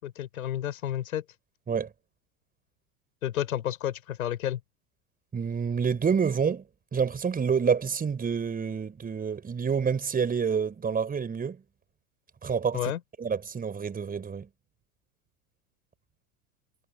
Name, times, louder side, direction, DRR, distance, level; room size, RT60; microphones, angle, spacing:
voice 1, 0.0-1.2 3.2-4.6 12.7-13.0, left 11 dB, 70° left, 5.6 m, -31 dB
voice 2, 5.3-6.6 6.9-11.6 12.4-12.9 13.2-14.5, right 6 dB, 20° right, 5.2 m, -28 dB
figure-of-eight pair, 90°, 44 cm